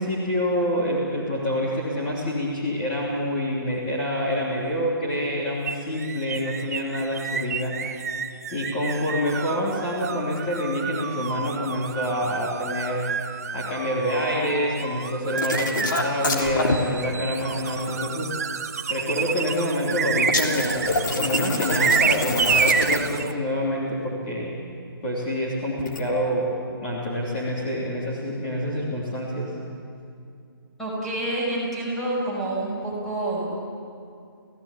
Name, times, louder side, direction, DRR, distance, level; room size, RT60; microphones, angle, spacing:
voice 1, 0.0-7.7 8.5-13.0 13.5-18.3 18.9-20.9 21.2-24.5 25.0-26.5 26.8-29.5, equal, 20° left, -6 dB, 3.2 m, -27 dB
sound 1, 5.7-23.3, right 6 dB, 40° right, 0.9 m, -29 dB
sound 2, 15.4-16.8 20.3-23.2 25.8-26.0, left 2 dB, 55° left, 3.3 m, -26 dB
voice 2, 30.8-33.5, right 1 dB, ahead, -7 dB, 5.3 m, -28 dB
28.5 x 16.5 x 8.7 m, 2.4 s
hypercardioid pair, 170°, 13 cm